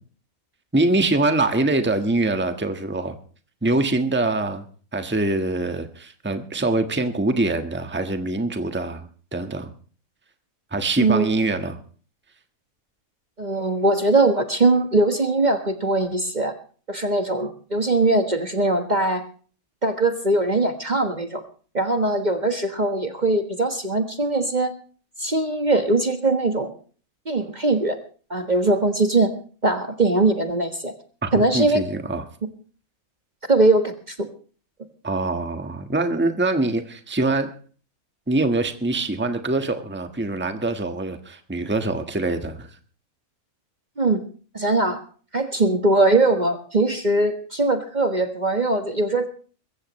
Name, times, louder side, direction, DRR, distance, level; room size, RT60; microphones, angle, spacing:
voice 1, 0.7-3.1 3.6-4.7 4.9-9.7 10.7-11.8 31.2-32.2 35.0-37.5 38.3-42.8, right 2 dB, 10° right, 7 dB, 1.3 m, -24 dB
voice 2, 13.4-16.5 16.9-19.2 19.8-21.4 21.7-24.7 25.2-26.7 27.3-28.0 28.3-29.3 29.6-30.9 31.3-31.8 33.5-34.3 44.0-44.2 44.5-45.0 45.3-49.3, right 2 dB, 30° right, 7 dB, 1.5 m, -21 dB
23.0 x 15.0 x 3.1 m, 0.41 s
omnidirectional pair, 1.5 m